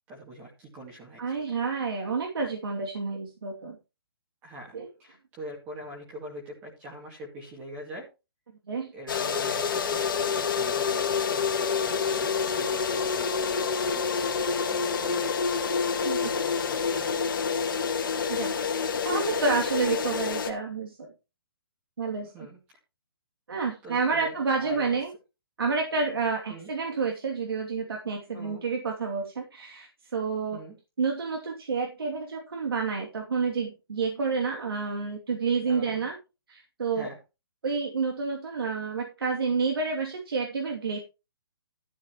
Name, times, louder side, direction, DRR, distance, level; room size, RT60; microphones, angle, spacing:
voice 1, 0.1-1.4 4.4-4.7 5.0-8.1 8.9-15.4 16.0-17.5 22.2-22.6 23.8-25.0 26.5-26.7 28.3-28.6 30.5-30.8 35.6-36.1 36.9-37.2, right 1 dB, 15° right, -2 dB, 2.3 m, -44 dB
voice 2, 1.2-3.8 4.7-4.9 8.7-8.9 16.0-16.3 18.3-18.5 19.0-21.1 22.0-22.5 23.5-25.1 25.6-30.6 31.0-36.2 36.5-37.1 37.6-41.0, right 4 dB, 75° right, 1 dB, 2.7 m, -29 dB
sound 1, 9.1-20.5, left 6 dB, 60° left, 2.3 m, -27 dB
12.5 x 10.5 x 3.0 m, 0.28 s
hypercardioid pair, 175°, 12 cm